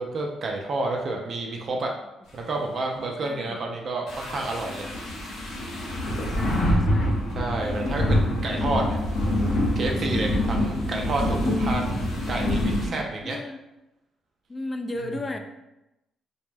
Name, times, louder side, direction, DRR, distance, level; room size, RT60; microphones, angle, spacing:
voice 1, 0.0-1.9 2.3-4.9 7.3-9.0 9.3-13.4, right 2 dB, 50° right, 0 dB, 0.4 m, -30 dB
voice 2, 3.2-3.7 6.3-7.2 13.2-13.6 14.5-15.4, left 2 dB, 25° left, 5 dB, 0.3 m, -35 dB
sound 1, 4.1-12.9, left 1 dB, 80° left, 0.8 m, -25 dB
2.2 x 2.1 x 3.1 m, 0.93 s
cardioid pair, 90°, 0 cm